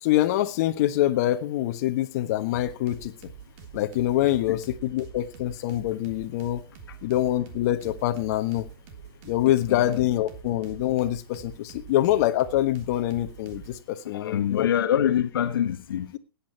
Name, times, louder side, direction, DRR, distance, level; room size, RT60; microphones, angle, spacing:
voice 1, 0.0-3.3 3.7-6.6 7.0-8.7 9.2-14.7, left 14 dB, 45° left, 1.3 m, -25 dB
sound 1, 2.5-13.8, right 7 dB, 40° right, 2.5 m, -46 dB
voice 2, 4.2-4.6 6.9-7.0 9.7-10.0 14.0-16.1, left 10 dB, 70° left, 1.1 m, -26 dB
18.0 x 8.7 x 4.5 m
hypercardioid pair, 150°, 12 cm